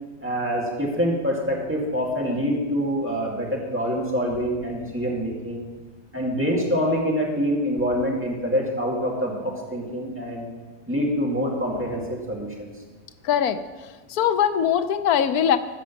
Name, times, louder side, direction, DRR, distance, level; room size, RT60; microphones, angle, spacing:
voice 1, 0.2-5.6 6.1-10.5 10.9-12.7, equal, 10° right, -3 dB, 2.1 m, -25 dB
voice 2, 13.2-13.6 14.1-15.6, left 9 dB, 85° left, 10 dB, 1.2 m, -21 dB
14.5 x 5.1 x 7.1 m, 1.3 s
omnidirectional pair, 1.5 m